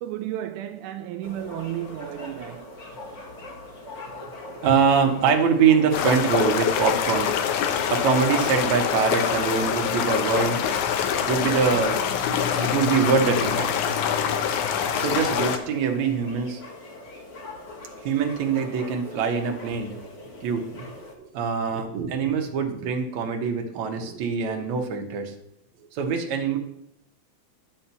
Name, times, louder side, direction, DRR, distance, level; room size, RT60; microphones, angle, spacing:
voice 1, 0.0-2.7, right 12 dB, 90° right, 2.1 m, -33 dB
sound 1, 1.2-21.1, left 2 dB, 30° left, 1.4 m, -42 dB
voice 2, 4.6-7.3 7.9-10.6 11.3-12.0 12.3-13.7 14.9-16.6 18.0-20.0 20.4-20.8 21.2-25.3 25.9-26.6, right 6 dB, 70° right, 2.3 m, -23 dB
sound 2, 5.9-15.6, left 8 dB, 90° left, 2.3 m, -25 dB
10.5 x 4.4 x 6.9 m
omnidirectional pair, 3.5 m